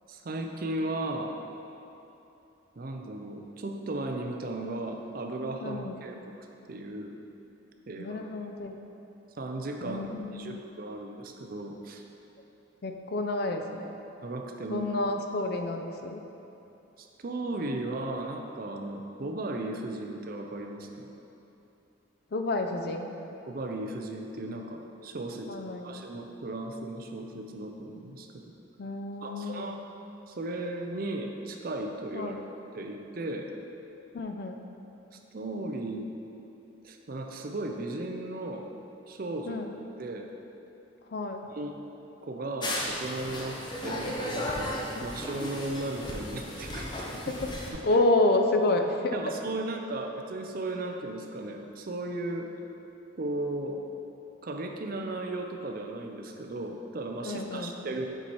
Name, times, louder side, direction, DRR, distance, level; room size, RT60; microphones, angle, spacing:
voice 1, 0.1-1.4 2.8-6.1 6.7-7.1 7.9-8.2 9.3-12.0 14.2-14.9 17.0-21.1 23.5-28.5 29.2-29.8 30.3-32.4 32.7-33.5 35.1-36.1 36.8-38.7 39.1-39.7 40.0-40.3 41.6-41.8 42.2-44.8 45.0-46.9 47.7-47.8 49.1-52.5 53.2-53.8 54.4-58.1, right 2 dB, 50° right, 3 dB, 0.5 m, -36 dB
voice 2, 5.6-6.0 8.0-8.8 9.8-10.6 12.8-13.9 14.7-16.2 22.3-23.1 25.5-25.9 28.8-29.7 32.1-32.4 34.1-34.7 39.5-39.8 41.1-41.5 47.8-49.2 57.2-57.7, left 2 dB, 55° left, 5 dB, 0.4 m, -29 dB
sound 1, 42.6-47.7, left 1 dB, 25° left, 0.7 m, -35 dB
6.8 x 4.3 x 4.6 m, 2.9 s
head